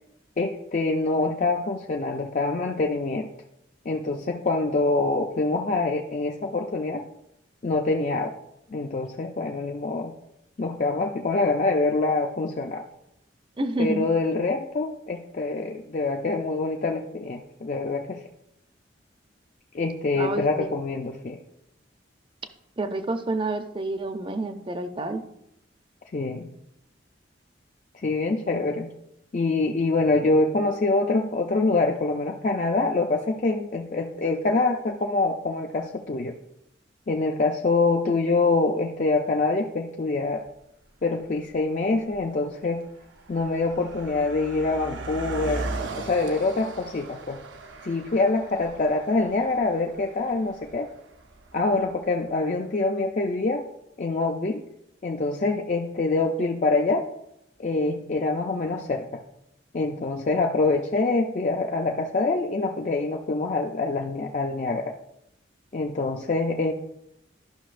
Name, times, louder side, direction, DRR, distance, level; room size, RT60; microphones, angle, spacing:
voice 1, 0.4-3.3 3.9-7.0 7.6-8.3 8.7-10.1 10.6-12.8 13.8-18.2 19.7-21.4 26.1-26.5 28.0-28.9 29.3-36.4 37.1-40.4 41.0-42.8 43.3-45.7 46.0-47.4 47.8-50.9 51.5-53.6 54.0-54.6 55.0-57.0 57.6-59.2 59.7-64.9 65.7-66.7, left 3 dB, 40° left, 2 dB, 0.4 m, -25 dB
voice 2, 13.6-14.1 20.2-20.7 22.8-25.2, right 2 dB, 25° right, 8 dB, 0.5 m, -29 dB
Car passing by, 40.5-40.6 41.3-41.6 41.9-52.3, right 3 dB, 75° right, 0.6 m, -38 dB
12.0 x 5.8 x 2.5 m, 0.82 s
head